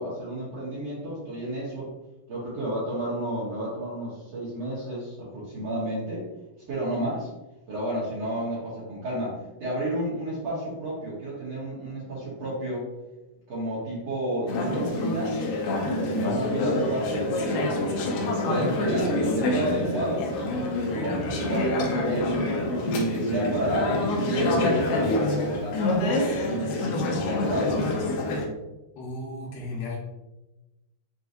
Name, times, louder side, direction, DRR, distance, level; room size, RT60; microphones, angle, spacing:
voice 1, 0.0-1.9 2.3-6.3 6.7-7.3 7.7-12.9 13.5-15.6 16.0-17.9 18.1-20.3 20.9-22.3 22.9-27.8, right 1 dB, 90° right, -8 dB, 1.4 m, -31 dB
Conversation / Chatter, 14.5-28.5, left 1 dB, 80° left, 2.4 m, -26 dB
voice 2, 28.9-30.0, left 2 dB, 65° left, -5 dB, 1.4 m, -35 dB
6.4 x 2.4 x 2.6 m, 1.0 s
omnidirectional pair, 4.4 m